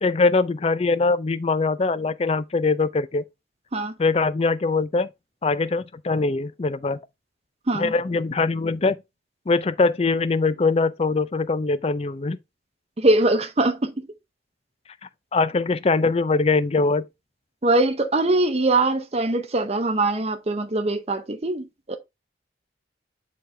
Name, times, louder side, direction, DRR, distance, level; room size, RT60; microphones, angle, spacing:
voice 1, 0.0-3.2 4.0-5.1 5.4-7.0 7.7-9.0 9.5-12.4 15.3-17.1, left 3 dB, 30° left, 0.4 m, -22 dB
voice 2, 13.0-13.9 17.6-22.0, right 2 dB, 35° right, 0.7 m, -22 dB
6.4 x 4.6 x 3.3 m
head